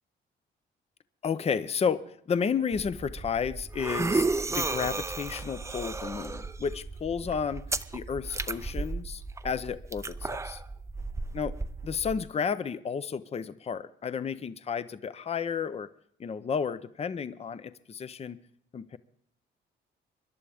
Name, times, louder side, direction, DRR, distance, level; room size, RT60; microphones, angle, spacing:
voice 1, 1.2-7.6 7.9-10.6 11.3-11.5 11.8-15.9 16.2-18.4 18.7-19.0, left 6 dB, 30° left, 14 dB, 0.6 m, -32 dB
sound 1, 2.7-12.2, right 3 dB, 15° right, 0.5 m, -34 dB
24.5 x 11.0 x 3.5 m, 0.65 s
cardioid pair, 90°, 20 cm